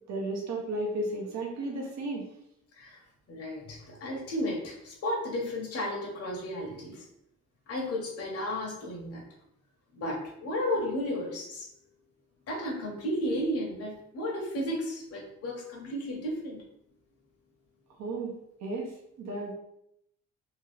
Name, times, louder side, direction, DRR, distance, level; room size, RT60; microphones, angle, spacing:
voice 1, 0.1-2.2 18.0-18.3 18.6-18.9 19.2-19.5, right 2 dB, 60° right, -1 dB, 0.8 m, -33 dB
voice 2, 3.3-7.1 7.7-9.2 9.9-11.7 12.5-16.6, left 1 dB, 50° left, -1 dB, 0.9 m, -33 dB
2.8 x 2.3 x 3.2 m, 0.76 s
cardioid pair, 90°, 30 cm